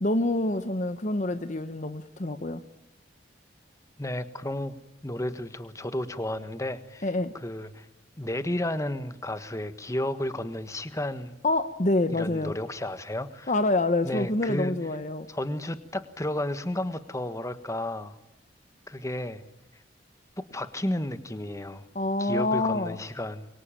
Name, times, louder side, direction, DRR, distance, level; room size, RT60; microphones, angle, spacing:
voice 1, 0.0-2.6 7.0-7.3 11.4-12.5 13.5-15.3 21.9-23.0, left 2 dB, 40° left, 10 dB, 1.0 m, -26 dB
voice 2, 4.0-4.8 5.0-7.0 7.3-7.9 8.2-11.4 12.1-13.5 14.0-14.7 15.3-18.2 18.9-19.4 20.5-21.8 22.2-23.5, left 1 dB, 15° left, 11 dB, 1.4 m, -32 dB
25.5 x 23.5 x 8.9 m, 0.82 s
head